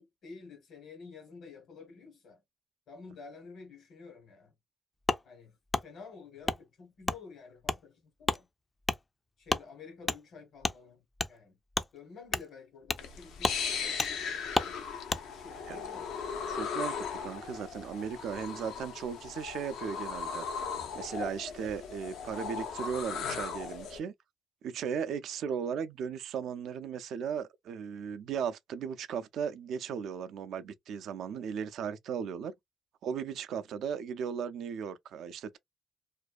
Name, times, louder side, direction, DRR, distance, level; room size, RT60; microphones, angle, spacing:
voice 1, 0.0-2.4 2.9-4.5 5.2-8.5 9.4-11.6 11.9-14.8 15.3-16.1 25.0-25.1, left 5 dB, 70° left, 1.2 m, -51 dB
Wood, 5.1-5.2 5.7-5.8 6.4-6.6 7.0-7.2 7.6-7.8 8.2-8.4 8.8-9.0 9.5-9.6 10.1-10.2 10.6-10.8 11.2-11.3 11.7-11.9 12.3-12.5 12.9-13.1 13.4-13.6 14.0-14.1 14.5-14.7 15.1-15.2, left 2 dB, 20° left, 0.3 m, -30 dB
sound 1, 13.0-24.0, left 6 dB, 85° left, 0.5 m, -38 dB
voice 2, 16.5-20.5 20.9-24.1 24.6-32.5 33.0-35.6, right 7 dB, 75° right, 0.3 m, -36 dB
2.5 x 2.2 x 2.4 m
cardioid pair, 90°, 0 cm